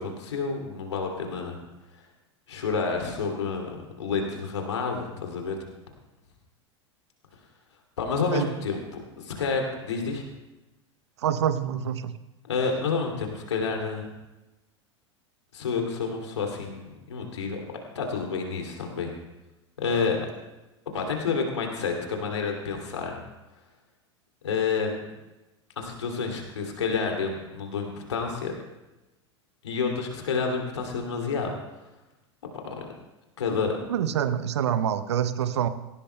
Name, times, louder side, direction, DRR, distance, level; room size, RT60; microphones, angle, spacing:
voice 1, 0.0-1.5 2.5-5.6 8.0-10.2 12.5-14.1 15.5-17.6 17.9-19.1 19.8-20.3 20.9-23.2 24.4-25.0 25.8-28.5 29.6-31.6 32.8-32.9 33.4-33.8, left 5 dB, 75° left, 2 dB, 2.6 m, -29 dB
voice 2, 11.2-12.1 33.9-35.7, right 9 dB, 70° right, 13 dB, 0.8 m, -26 dB
18.0 x 17.0 x 2.2 m, 1.0 s
figure-of-eight pair, 85°, 15 cm